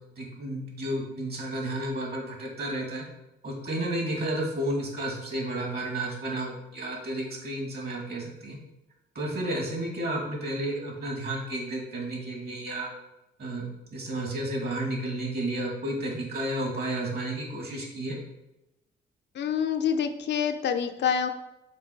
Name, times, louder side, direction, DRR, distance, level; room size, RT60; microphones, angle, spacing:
voice 1, 0.2-3.0 3.4-8.6 9.1-12.9 13.4-18.2, right 1 dB, 50° right, 0 dB, 2.1 m, -32 dB
voice 2, 19.3-21.3, left 7 dB, 60° left, 7 dB, 0.6 m, -26 dB
6.0 x 4.0 x 4.6 m, 0.93 s
cardioid pair, 90°, 20 cm